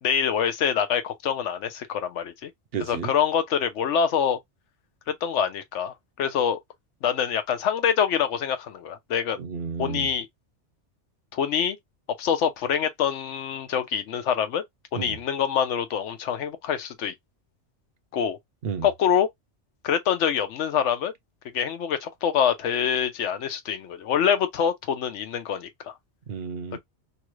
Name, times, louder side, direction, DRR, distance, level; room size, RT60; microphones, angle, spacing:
voice 1, 0.0-2.5 2.8-4.4 5.1-6.6 7.0-9.4 9.8-10.3 11.3-11.8 12.2-14.6 14.9-17.1 18.1-18.4 18.8-19.3 19.8-21.1 21.5-25.9, left 8 dB, 85° left, 1.0 m, -25 dB
voice 2, 2.7-3.1 9.4-10.1 14.9-15.2 18.6-18.9 26.3-26.8, right 6 dB, 65° right, 0.8 m, -32 dB
3.1 x 2.4 x 3.0 m
omnidirectional pair, 1.2 m